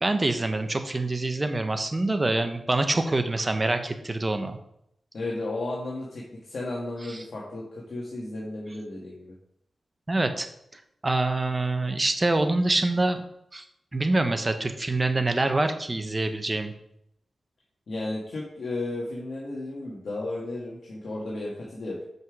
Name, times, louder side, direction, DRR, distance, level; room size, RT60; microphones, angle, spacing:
voice 1, 0.0-4.6 7.1-7.2 10.1-10.5 11.0-13.2 13.5-13.6 13.9-16.7, right 2 dB, 30° right, 8 dB, 0.9 m, -25 dB
voice 2, 5.1-9.3 17.9-22.0, left 2 dB, 65° left, -4 dB, 1.5 m, -34 dB
5.6 x 5.4 x 4.7 m, 0.76 s
cardioid pair, 65°, 0 cm